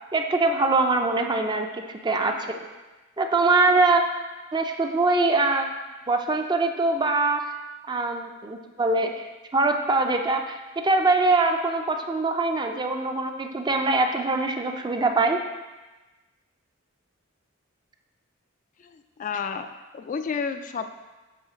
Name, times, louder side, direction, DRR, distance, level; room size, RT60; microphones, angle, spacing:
voice 1, 0.1-2.6 3.2-4.0 4.5-5.7 6.1-7.4 7.9-9.1 9.5-10.6 10.8-15.4, right 3 dB, 20° right, 4 dB, 0.5 m, -23 dB
voice 2, 18.8-19.7 19.9-20.9, left 5 dB, 40° left, 8 dB, 0.3 m, -31 dB
7.7 x 3.2 x 5.7 m, 1.2 s
head